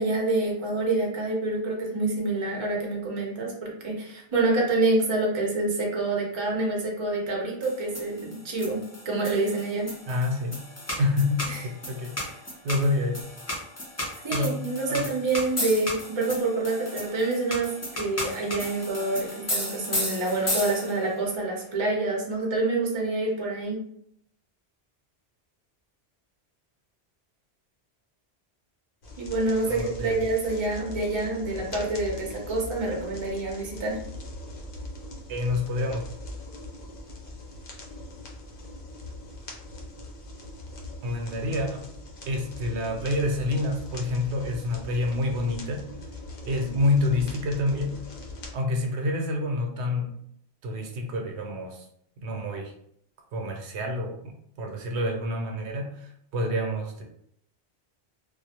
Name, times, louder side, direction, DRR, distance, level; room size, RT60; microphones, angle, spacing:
voice 1, 0.0-9.9 11.5-11.6 14.2-23.8 29.2-34.0, right 2 dB, 35° right, -1 dB, 0.5 m, -27 dB
sound 1, 7.6-21.1, left 1 dB, 25° left, 0.3 m, -34 dB
voice 2, 10.1-10.6 11.0-12.4 12.6-13.2 14.0-14.6 14.9-15.1 29.7-30.2 35.3-36.0 41.0-41.9 42.3-45.8 46.4-47.9 48.5-50.1 50.6-51.8 52.2-52.7 53.3-57.0, left 2 dB, 80° right, 2 dB, 0.9 m, -28 dB
sound 2, 29.0-48.5, left 2 dB, 60° left, 0.7 m, -41 dB
2.4 x 2.0 x 2.7 m, 0.69 s
omnidirectional pair, 1.1 m